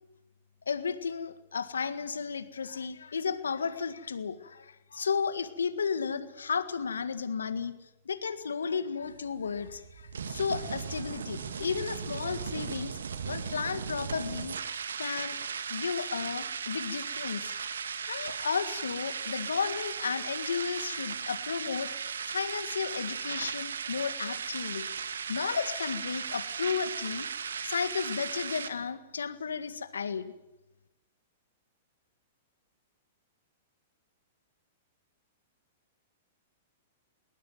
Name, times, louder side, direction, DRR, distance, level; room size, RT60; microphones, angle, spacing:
voice 1, 0.7-7.8 8.1-13.0 13.3-15.4 15.7-17.5 18.1-24.9 25.3-27.3 27.6-30.3, left 6 dB, 80° left, 12 dB, 1.8 m, -33 dB
sound 1, 9.0-28.7, right 6 dB, 80° right, 1.7 m, -37 dB
21.0 x 19.5 x 9.3 m, 0.95 s
hypercardioid pair, 110°, 0 cm